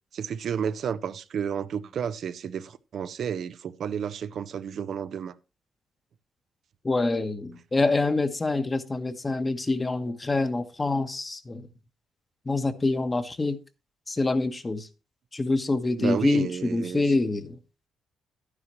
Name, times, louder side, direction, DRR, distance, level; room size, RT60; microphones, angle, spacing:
voice 1, 0.1-5.3 16.0-17.0, right 7 dB, 60° right, 0.5 m, -31 dB
voice 2, 6.8-11.7 12.4-13.6 14.1-14.9 15.3-17.6, left 3 dB, 25° left, 1.1 m, -26 dB
11.0 x 9.8 x 3.1 m
cardioid pair, 90°, 0 cm